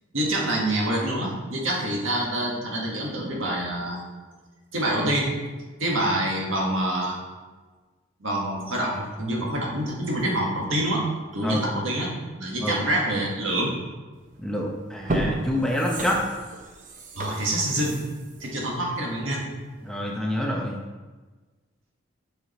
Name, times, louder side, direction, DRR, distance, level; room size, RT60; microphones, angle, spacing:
voice 1, 0.1-4.0 4.7-5.3 5.8-7.2 8.2-11.0 11.3-12.1 12.4-13.8 17.2-18.0 18.4-19.5, right 1 dB, 75° right, -2 dB, 1.7 m, -26 dB
sound 1, 14.3-14.4 14.9-19.6 20.0-20.1, right 1 dB, 40° right, 0.8 m, -32 dB
voice 2, 14.4-16.2 19.8-20.8, equal, 5° left, -2 dB, 0.7 m, -27 dB
7.3 x 5.0 x 4.4 m, 1.3 s
head